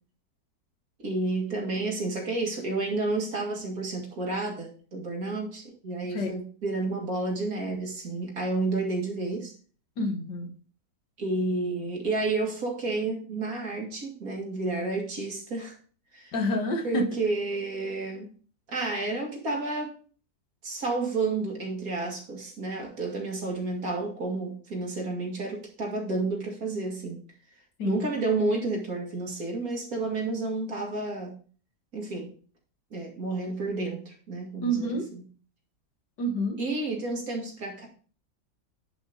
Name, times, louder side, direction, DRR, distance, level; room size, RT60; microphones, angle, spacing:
voice 1, 1.0-9.5 11.2-15.8 16.1-16.3 16.8-18.3 18.7-19.9 20.6-27.2 27.8-31.4 31.9-32.3 32.9-35.2 36.6-37.9, right 3 dB, 55° right, 0 dB, 2.6 m, -31 dB
voice 2, 10.0-10.5 16.3-17.1 27.8-28.1 34.6-35.1 36.2-36.6, equal, 85° left, 4 dB, 2.1 m, -28 dB
10.5 x 5.4 x 3.9 m, 0.42 s
omnidirectional pair, 1.8 m